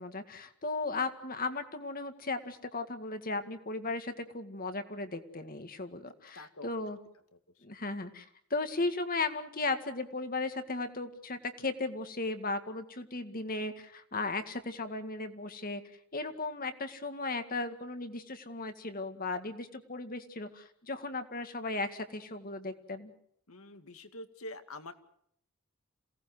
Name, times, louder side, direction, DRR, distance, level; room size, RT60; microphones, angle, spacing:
voice 1, 0.0-7.0 7.6-8.3 8.5-15.8 16.1-23.1, left 3 dB, 40° left, 8 dB, 2.0 m, -36 dB
voice 2, 6.3-6.8 23.5-24.9, left 2 dB, 75° left, 9 dB, 2.2 m, -46 dB
27.5 x 18.0 x 7.8 m, 0.68 s
head